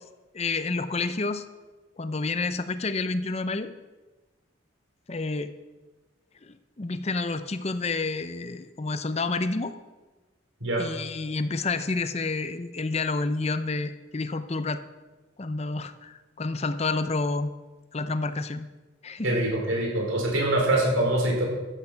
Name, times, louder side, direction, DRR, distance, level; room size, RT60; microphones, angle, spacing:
voice 1, 0.3-1.4 2.0-3.7 5.1-5.5 6.4-9.7 10.8-14.8 15.4-17.5 17.9-18.7 19.0-19.4, left 3 dB, 30° left, 11 dB, 0.6 m, -29 dB
voice 2, 19.2-21.4, right 1 dB, 90° right, -1 dB, 4.6 m, -24 dB
14.0 x 8.4 x 5.8 m, 1.2 s
head